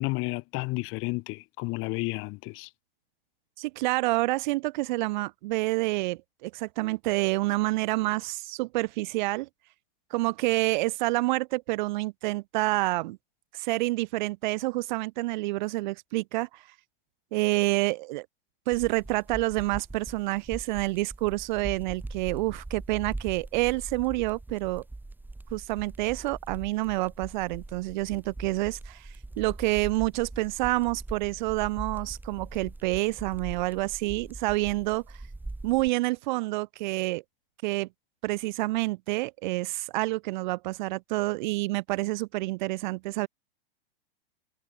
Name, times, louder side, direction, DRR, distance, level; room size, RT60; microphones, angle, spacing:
voice 1, 0.0-2.7, left 25 dB, 45° left, 3.4 m, -31 dB
voice 2, 3.6-9.5 10.1-13.2 13.5-16.6 17.3-18.3 18.7-24.8 25.5-35.0 35.6-37.2 37.6-37.9 38.2-43.3, right 21 dB, 50° right, 0.6 m, -28 dB
sound 1, 18.7-35.9, right 2 dB, 5° right, 2.7 m, -42 dB
hypercardioid pair, 110°, 30 cm